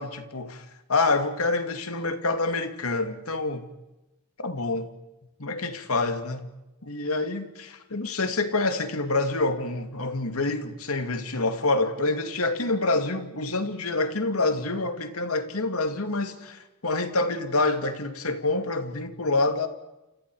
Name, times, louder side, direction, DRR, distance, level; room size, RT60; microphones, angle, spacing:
voice 1, 0.0-3.7 4.4-4.9 5.4-6.5 6.8-19.7, left 3 dB, 85° left, 2.4 m, -27 dB
29.0 x 28.5 x 4.9 m
head